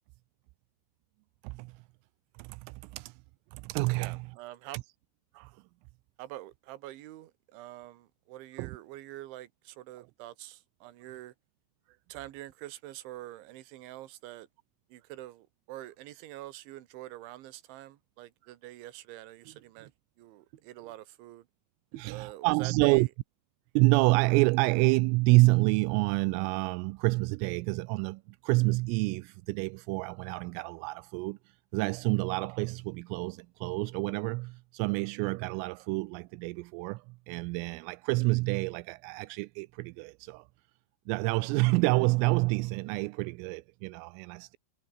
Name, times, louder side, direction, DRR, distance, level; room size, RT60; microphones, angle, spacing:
voice 1, 1.4-1.8 2.4-3.2 3.5-4.3 5.3-5.6 8.6-8.8 10.0-10.1 22.0-23.1 23.8-40.5 41.1-44.6, right 25 dB, 85° right, 3.2 m, -28 dB
voice 2, 4.0-4.8 6.2-11.3 12.1-14.5 14.9-19.9 20.2-21.5 21.9-23.1, right 15 dB, 70° right, 3.7 m, -45 dB
omnidirectional pair, 5.8 m